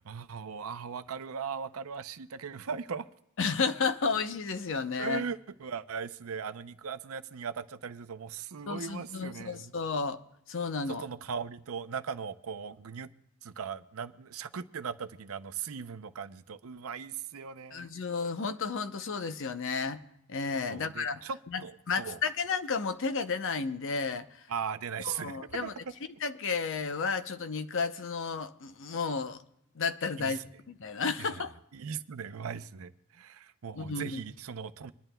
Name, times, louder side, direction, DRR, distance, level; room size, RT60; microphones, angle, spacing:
voice 1, 0.0-3.1 5.0-9.7 10.9-13.1 13.4-17.9 20.7-22.2 24.5-25.7 30.2-30.4 31.2-31.4 31.7-34.9, right 6 dB, 70° right, 0.6 m, -39 dB
voice 2, 3.4-5.2 8.7-10.2 10.5-11.0 17.7-20.0 20.3-21.2 21.5-24.4 25.0-25.7 26.2-29.4 29.8-30.4 30.7-31.5 33.8-34.2, left 5 dB, 60° left, 0.7 m, -32 dB
26.5 x 11.0 x 2.2 m
head